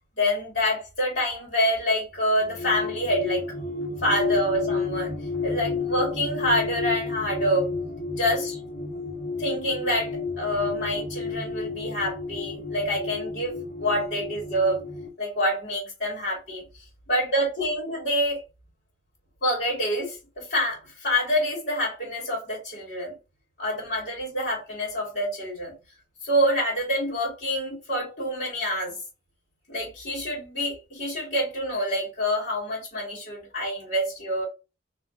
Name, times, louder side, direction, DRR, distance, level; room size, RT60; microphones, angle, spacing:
voice 1, 0.2-3.4 4.0-5.1 5.4-7.7 8.1-8.6 9.4-10.1 10.4-14.8 15.2-18.4 19.4-23.1 23.6-25.7 26.2-29.0 29.7-34.4, equal, 55° left, 2.5 m, -27 dB
sound 1, 2.3-15.1, left 4 dB, 75° left, 1.8 m, -31 dB
4.3 x 3.2 x 2.9 m
head